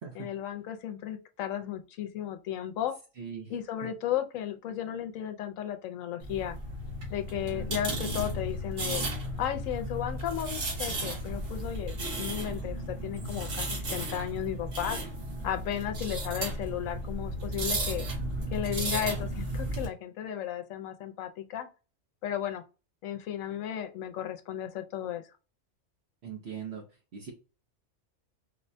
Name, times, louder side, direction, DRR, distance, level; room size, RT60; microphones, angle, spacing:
voice 1, 0.1-2.9 3.5-6.6 7.1-9.0 9.4-15.0 15.4-18.1 18.5-21.7 22.2-22.6 23.0-25.2, left 10 dB, 90° left, 1.0 m, -34 dB
voice 2, 3.2-3.5 7.5-7.8 26.2-26.8 27.1-27.3, right 7 dB, 60° right, 1.0 m, -40 dB
sound 1, 6.2-19.9, right 1 dB, 75° right, 1.6 m, -34 dB
4.7 x 2.1 x 2.6 m
omnidirectional pair, 1.3 m